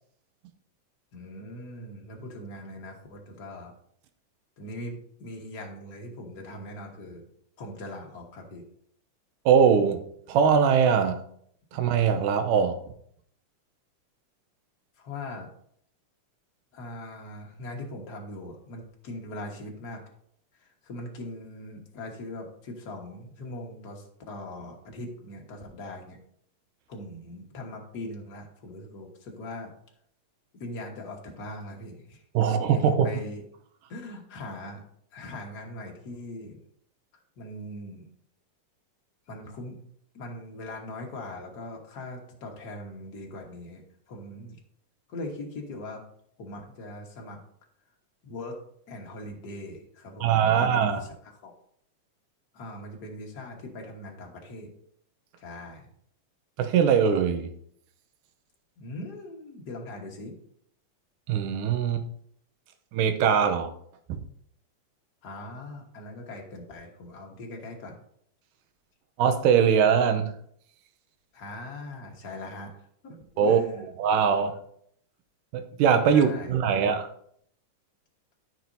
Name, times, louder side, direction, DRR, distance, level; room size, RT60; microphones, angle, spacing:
voice 1, 1.1-3.7 4.6-7.2 7.6-8.6 15.0-15.5 16.7-20.0 20.6-26.2 26.9-29.7 30.5-32.2 32.6-33.4 33.9-34.8 35.1-36.6 37.4-38.1 39.3-39.8 40.1-44.6 45.1-46.0 46.4-47.4 48.2-48.6 48.9-51.5 52.5-54.7 55.4-55.9 58.8-60.3 65.2-68.0 71.3-73.9 76.1-76.9, left 1 dB, 45° left, 1 dB, 1.3 m, -41 dB
voice 2, 9.5-11.2 11.7-12.8 32.3-33.1 50.2-51.0 56.6-57.5 61.3-62.0 62.9-63.7 64.1-64.2 69.2-70.3 73.4-73.6 74.0-74.5 75.5-77.1, right 7 dB, 80° right, 8 dB, 2.3 m, -22 dB
13.5 x 6.1 x 2.7 m, 0.67 s
omnidirectional pair, 3.8 m